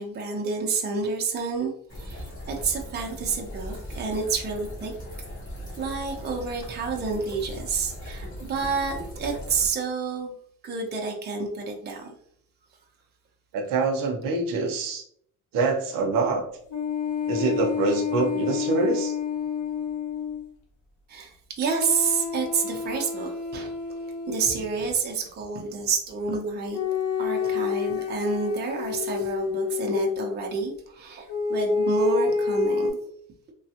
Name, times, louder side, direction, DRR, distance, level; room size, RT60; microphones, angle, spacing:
voice 1, 0.0-4.9 5.8-10.3 10.6-12.1 21.1-23.7 24.3-26.8 27.2-33.0, right 4 dB, 30° right, 1 dB, 0.6 m, -29 dB
sound 1, 1.9-9.7, equal, 35° left, 1.4 m, -38 dB
voice 2, 13.5-15.0 15.5-16.4 17.3-19.2, right 3 dB, 70° right, 3 dB, 0.7 m, -25 dB
sound 2, 16.7-20.4 21.6-24.7 26.7-30.2 31.3-32.9, left 6 dB, 60° left, 0.9 m, -28 dB
3.1 x 2.3 x 2.8 m, 0.64 s
cardioid pair, 150°, 34 cm